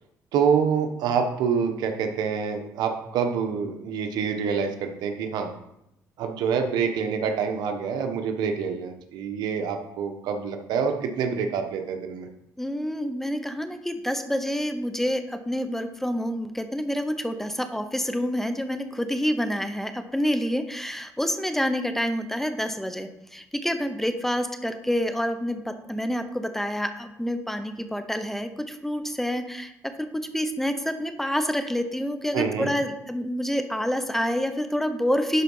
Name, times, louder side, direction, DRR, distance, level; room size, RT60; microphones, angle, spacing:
voice 1, 0.3-5.5 6.2-12.3 32.3-32.7, right 6 dB, 80° right, 5 dB, 1.2 m, -26 dB
voice 2, 12.6-35.4, equal, 5° left, 8 dB, 0.9 m, -28 dB
11.0 x 4.1 x 5.5 m, 0.83 s
cardioid pair, 95°, 7 cm